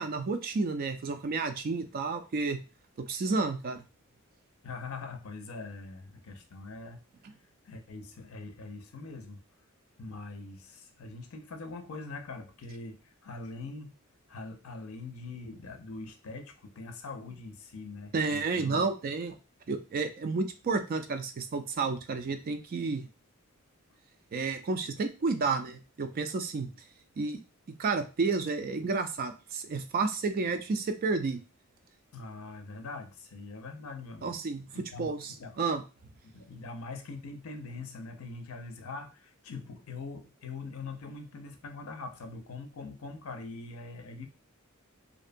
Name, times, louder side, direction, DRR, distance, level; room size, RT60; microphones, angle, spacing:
voice 1, 0.0-2.6 3.0-3.8 18.1-19.4 19.7-23.1 24.3-26.7 27.2-27.4 27.8-31.4 34.2-34.6 35.0-35.8, right 4 dB, 45° right, 8 dB, 0.4 m, -31 dB
voice 2, 4.6-7.0 7.6-9.4 10.0-13.9 14.3-18.9 32.1-34.4 34.7-35.6 36.2-44.3, left 3 dB, 70° left, 6 dB, 0.5 m, -43 dB
2.6 x 2.2 x 2.5 m, 0.30 s
head